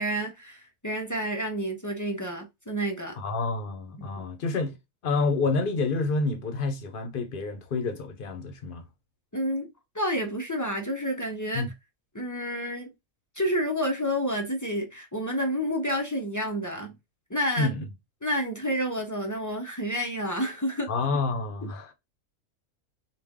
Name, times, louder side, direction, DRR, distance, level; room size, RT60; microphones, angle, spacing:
voice 1, 0.0-3.2 4.0-4.1 9.3-11.7 12.1-12.9 13.4-17.0 17.3-17.7 18.2-20.9 21.6-21.7, equal, 20° left, 0.5 m, -29 dB
voice 2, 3.1-4.7 5.0-8.8 11.5-11.7 17.6-17.8 20.9-21.9, left 3 dB, 45° left, 0.8 m, -28 dB
5.0 x 2.4 x 3.6 m
omnidirectional pair, 1.5 m